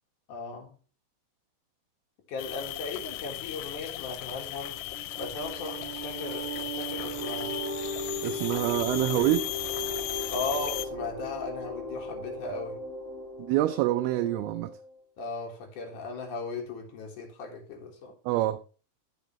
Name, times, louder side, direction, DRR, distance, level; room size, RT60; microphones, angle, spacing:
voice 1, 0.3-0.8 2.3-4.8 5.2-7.5 10.3-12.8 15.2-18.1, left 3 dB, 60° left, 2.6 m, -37 dB
sound 1, 2.4-10.9, left 16 dB, 90° left, 2.6 m, -36 dB
sound 2, 4.7-14.9, equal, 35° right, 1.1 m, -37 dB
voice 2, 8.2-9.5 13.4-14.8 18.3-18.6, right 14 dB, 85° right, 2.4 m, -26 dB
14.5 x 4.9 x 3.0 m
omnidirectional pair, 4.6 m